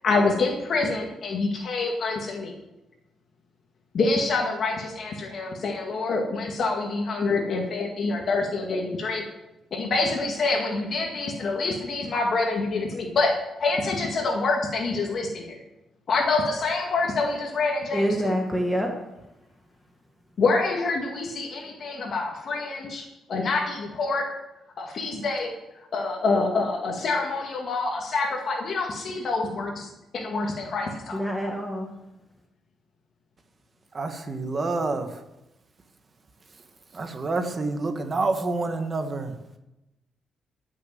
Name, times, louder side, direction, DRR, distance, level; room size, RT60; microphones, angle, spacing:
voice 1, 0.0-2.5 3.9-9.2 9.7-15.6 16.1-18.3 20.4-24.3 24.8-25.5 25.9-29.9 30.1-31.5, left 3 dB, 50° left, 1 dB, 1.9 m, -26 dB
voice 2, 17.9-18.9 31.1-31.9, equal, 5° left, 2 dB, 1.3 m, -26 dB
voice 3, 33.9-35.1 36.9-39.3, right 3 dB, 30° right, 6 dB, 1.5 m, -28 dB
14.5 x 6.8 x 7.7 m, 0.96 s
cardioid pair, 135°, 0 cm